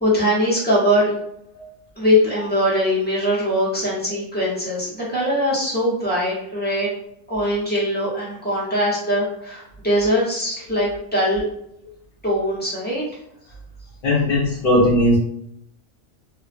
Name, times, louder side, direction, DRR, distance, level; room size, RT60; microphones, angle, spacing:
voice 1, 0.0-1.1 2.0-6.9 7.3-11.4 12.2-13.0, equal, 10° left, -8 dB, 0.9 m, -21 dB
voice 2, 14.0-15.2, left 1 dB, 50° left, -7 dB, 0.8 m, -18 dB
2.7 x 2.2 x 2.5 m, 0.75 s
omnidirectional pair, 1.3 m